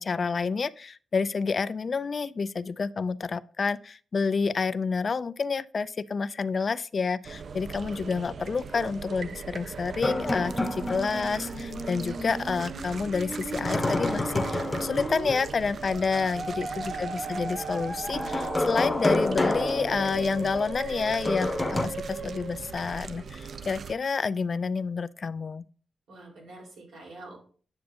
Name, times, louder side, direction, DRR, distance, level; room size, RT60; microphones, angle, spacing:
voice 1, 0.0-21.5 21.8-25.6, left 5 dB, 50° left, 0.3 m, -29 dB
sound 1, 7.2-24.0, right 5 dB, 60° right, 0.4 m, -40 dB
Musical instrument, 9.8-22.9, right 2 dB, 45° right, 1.6 m, -37 dB
sound 2, 10.0-11.5 11.8-11.9 13.6-15.6 18.1-20.6 21.3-21.8, left 2 dB, 20° left, 1.0 m, -29 dB
voice 2, 16.9-17.5 26.1-27.4, right 2 dB, 90° right, 3.8 m, -47 dB
9.5 x 6.6 x 2.6 m
cardioid pair, 70°, 0 cm